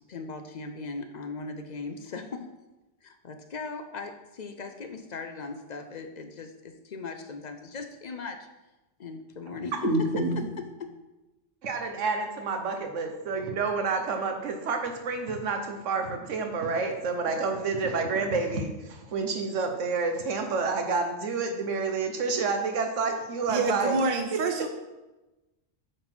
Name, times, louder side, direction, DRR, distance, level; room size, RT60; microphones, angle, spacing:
voice 1, 0.1-2.5 3.0-8.5 9.0-9.8 10.2-10.9, left 4 dB, 55° left, 6 dB, 0.5 m, -39 dB
voice 2, 9.5-10.3 11.6-24.0, right 4 dB, 75° right, 4 dB, 1.3 m, -29 dB
voice 3, 23.5-24.7, right 3 dB, 50° right, 5 dB, 0.6 m, -27 dB
7.9 x 4.1 x 4.4 m, 1.0 s
omnidirectional pair, 1.3 m